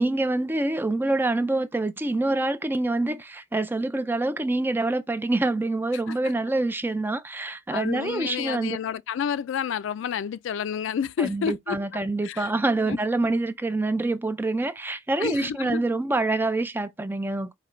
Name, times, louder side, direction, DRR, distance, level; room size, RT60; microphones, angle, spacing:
voice 1, 0.0-8.8 11.2-17.5, right 2 dB, 10° right, 0.3 m, -26 dB
voice 2, 7.7-11.8 12.2-12.5 12.9-13.0 15.2-15.8, left 8 dB, 75° left, 0.3 m, -29 dB
4.9 x 2.2 x 3.1 m
head